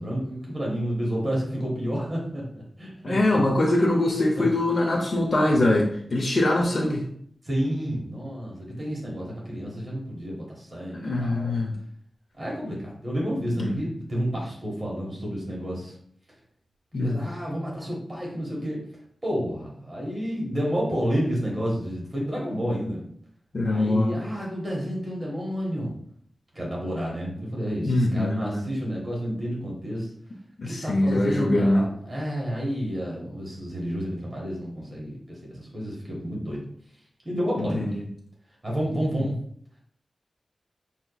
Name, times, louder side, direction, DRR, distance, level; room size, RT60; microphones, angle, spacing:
voice 1, 0.0-3.4 4.4-4.5 7.4-11.6 12.4-15.9 17.0-18.8 19.2-23.1 23.6-25.9 26.5-30.1 30.6-36.6 37.2-37.9 38.6-39.4, equal, 30° right, -4 dB, 1.3 m, -30 dB
voice 2, 3.0-7.0 10.9-11.7 13.6-13.8 16.9-17.2 23.5-24.1 27.8-28.6 30.6-31.9 37.6-38.0, left 1 dB, 55° left, -2 dB, 0.7 m, -23 dB
5.7 x 2.9 x 2.3 m, 0.64 s
wide cardioid pair, 95°, 0 cm